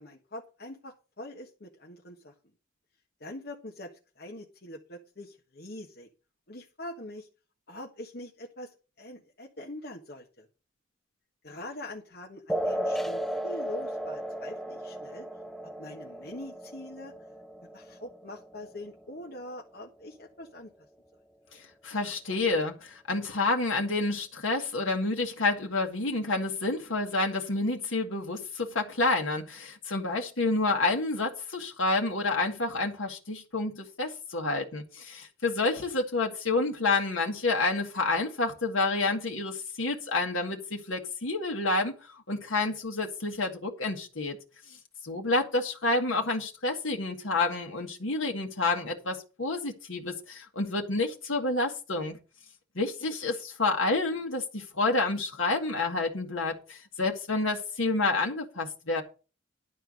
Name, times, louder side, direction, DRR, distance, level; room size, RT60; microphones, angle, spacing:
voice 1, 0.0-2.3 3.2-3.9 4.1-6.1 6.5-7.3 7.7-10.5 11.4-15.3 15.8-17.1 17.7-20.7 53.0-53.1, left 1 dB, 50° left, 1.4 m, -43 dB
sound 1, 12.5-19.5, equal, ahead, 0.4 m, -35 dB
voice 2, 21.5-44.4 45.0-52.2 52.7-59.0, left 3 dB, 80° left, 1.6 m, -29 dB
11.0 x 4.5 x 7.7 m
head